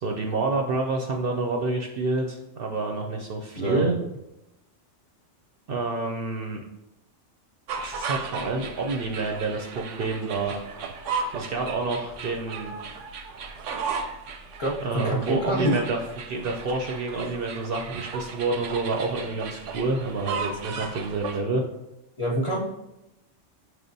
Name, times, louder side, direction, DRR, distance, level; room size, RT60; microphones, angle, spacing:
voice 1, 0.0-4.0 5.7-6.6 7.8-10.6 11.3-12.7 14.8-16.0 16.3-21.6, right 3 dB, 60° right, 2 dB, 0.6 m, -28 dB
voice 2, 3.6-3.9 14.6-15.8 22.2-22.6, right 1 dB, 30° left, -3 dB, 0.6 m, -26 dB
sound 1, 7.7-21.4, right 5 dB, 80° right, 0.9 m, -35 dB
5.9 x 3.4 x 2.6 m, 0.92 s
omnidirectional pair, 1.3 m